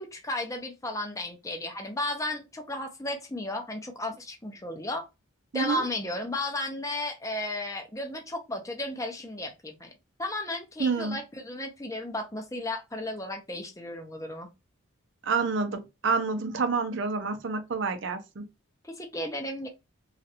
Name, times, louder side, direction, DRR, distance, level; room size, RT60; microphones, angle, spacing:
voice 1, 0.0-5.0 5.5-9.9 10.2-14.5 18.8-19.7, left 1 dB, 15° left, 0.6 m, -34 dB
voice 2, 5.5-5.9 10.8-11.2 15.2-18.4, right 4 dB, 60° right, 0.6 m, -28 dB
3.1 x 2.4 x 2.8 m
head